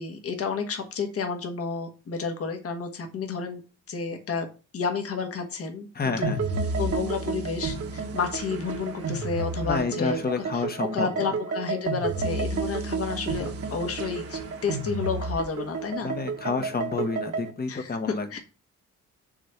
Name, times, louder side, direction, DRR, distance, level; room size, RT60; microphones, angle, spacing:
voice 1, 0.0-3.6 3.9-4.5 4.7-6.3 6.8-10.2 10.5-10.6 10.9-16.1 17.7-18.4, left 5 dB, 50° left, 4 dB, 1.4 m, -31 dB
voice 2, 5.9-6.4 9.6-11.3 16.0-18.4, left 4 dB, 30° left, 8 dB, 1.1 m, -29 dB
sound 1, 6.2-17.5, right 4 dB, 50° right, 1.4 m, -31 dB
6.2 x 3.4 x 5.7 m, 0.34 s
cardioid pair, 90°, 30 cm